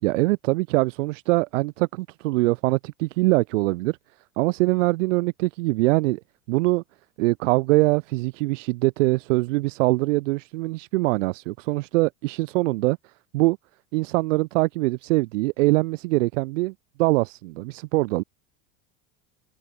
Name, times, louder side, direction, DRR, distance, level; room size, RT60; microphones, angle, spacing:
voice 1, 0.0-4.0 4.4-6.2 6.5-6.8 7.2-13.0 13.3-13.6 13.9-16.7 17.0-18.2, right 22 dB, 85° right, 1.0 m, -23 dB
open air
supercardioid pair, 145°, 36 cm